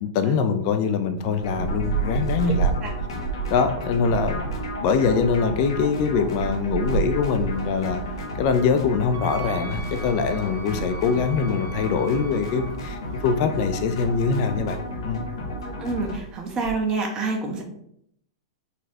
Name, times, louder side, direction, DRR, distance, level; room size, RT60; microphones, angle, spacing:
voice 1, 0.0-2.7 3.5-4.5 4.8-8.0 8.4-14.8 15.0-15.2, left 5 dB, 50° left, 8 dB, 0.3 m, -23 dB
sound 1, 1.2-16.7, right 6 dB, 50° right, 1.5 m, -33 dB
sound 2, 1.4-16.2, equal, 80° left, 0.8 m, -33 dB
voice 2, 2.5-2.9 15.6-17.6, right 3 dB, 30° right, 2 dB, 0.7 m, -28 dB
Wind instrument woodwind instrument, 9.1-12.7, right 5 dB, 65° right, 0.5 m, -40 dB
4.0 x 2.2 x 2.7 m, 0.71 s
hypercardioid pair, 110°, 2 cm